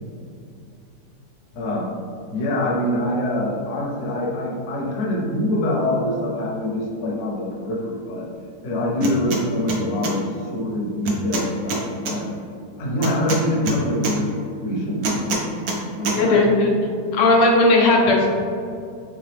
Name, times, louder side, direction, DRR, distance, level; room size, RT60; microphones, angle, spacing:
voice 1, 1.5-1.9 2.3-8.3 8.6-12.3 12.8-15.4 16.0-16.4, left 1 dB, 55° left, -3 dB, 0.9 m, -25 dB
sound 1, 9.0-9.4 9.7-10.1 11.1-12.2 13.0-14.2 15.0-15.8 16.1-16.2, right 2 dB, 65° right, 0.9 m, -24 dB
voice 2, 16.1-16.7 17.1-18.3, left 2 dB, 90° left, -1 dB, 1.4 m, -16 dB
3.7 x 3.5 x 3.3 m, 2.4 s
omnidirectional pair, 1.8 m